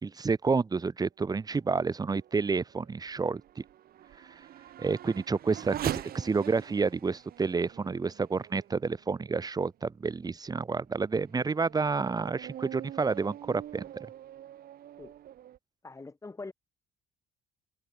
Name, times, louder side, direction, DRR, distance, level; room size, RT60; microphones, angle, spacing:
voice 1, 0.0-3.6 4.8-14.1, right 4 dB, 25° right, 1.4 m, -29 dB
Race car auto racing / Accelerating revving vroom, 1.7-9.5 10.1-10.2 10.8-15.6, right 12 dB, 60° right, 7.9 m, -44 dB
voice 2, 15.8-16.5, left 3 dB, 20° left, 4.2 m, -43 dB
cardioid pair, 110°, 17 cm